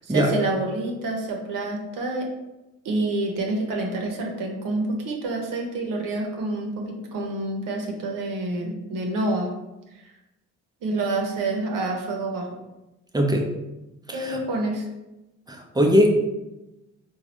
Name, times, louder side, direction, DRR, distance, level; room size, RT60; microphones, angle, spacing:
voice 1, 0.0-2.3 2.8-9.5 10.8-12.5 14.1-14.9, right 2 dB, 65° right, 1 dB, 0.9 m, -27 dB
voice 2, 13.1-13.5 14.1-14.4 15.5-16.1, equal, 10° right, 1 dB, 0.7 m, -20 dB
3.9 x 2.4 x 3.0 m, 0.98 s
hypercardioid pair, 50°, 35 cm